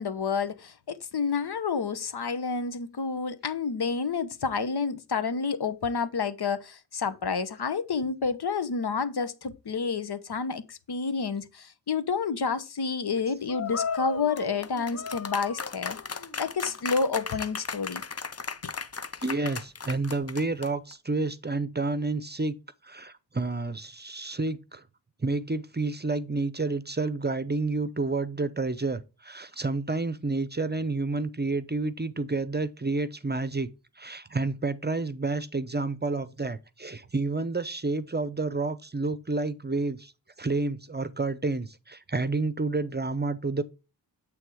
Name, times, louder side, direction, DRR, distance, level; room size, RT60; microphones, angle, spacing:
voice 1, 0.0-16.0 16.4-18.0 18.6-18.7, left 5 dB, 65° left, 0.9 m, -29 dB
sound 1, 13.5-20.9, left 5 dB, 35° left, 0.7 m, -35 dB
voice 2, 19.2-22.6 22.8-24.8 25.2-33.7 34.0-40.1 40.4-43.6, right 3 dB, 25° right, 0.7 m, -30 dB
8.3 x 3.5 x 4.7 m
cardioid pair, 45°, 43 cm